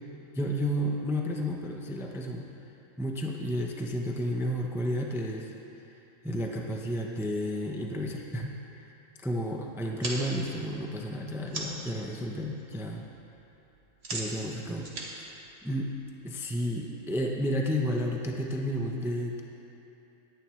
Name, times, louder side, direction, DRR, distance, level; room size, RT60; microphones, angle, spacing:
voice 1, 0.3-2.5 3.0-5.5 6.2-8.9 9.2-13.0 14.1-15.3 15.6-15.9 16.2-19.4, equal, 5° right, 1 dB, 0.6 m, -32 dB
sound 1, 10.0-11.9 12.3-12.8 13.0-16.3, right 2 dB, 50° right, 1.7 m, -40 dB
18.5 x 10.5 x 3.2 m, 2.9 s
omnidirectional pair, 1.4 m